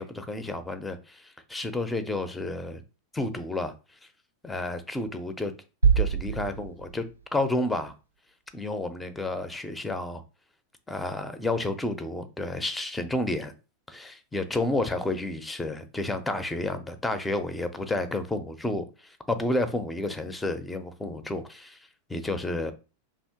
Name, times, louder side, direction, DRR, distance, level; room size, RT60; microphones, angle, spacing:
voice 1, 0.0-2.8 3.1-3.7 4.4-5.5 6.0-7.1 7.3-7.9 8.5-10.2 10.9-13.5 13.9-21.8 22.1-22.7, left 2 dB, 10° left, 0.4 m, -30 dB
sound 1, 5.8-7.6, right 6 dB, 80° right, 0.3 m, -25 dB
2.7 x 2.4 x 3.5 m
figure-of-eight pair, 90°, 0 cm